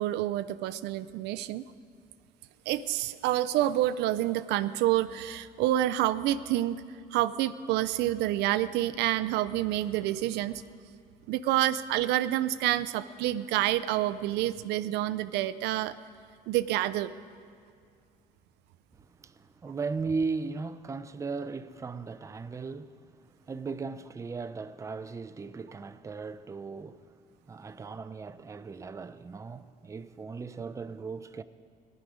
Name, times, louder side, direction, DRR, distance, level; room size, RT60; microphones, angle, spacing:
voice 1, 0.0-1.6 2.7-6.8 7.1-10.6 11.3-15.9 16.5-17.1, right 14 dB, 85° right, 0.5 m, -28 dB
voice 2, 18.9-27.1 27.5-31.4, right 4 dB, 20° right, 0.5 m, -37 dB
16.0 x 11.0 x 4.9 m
cardioid pair, 110°, 17 cm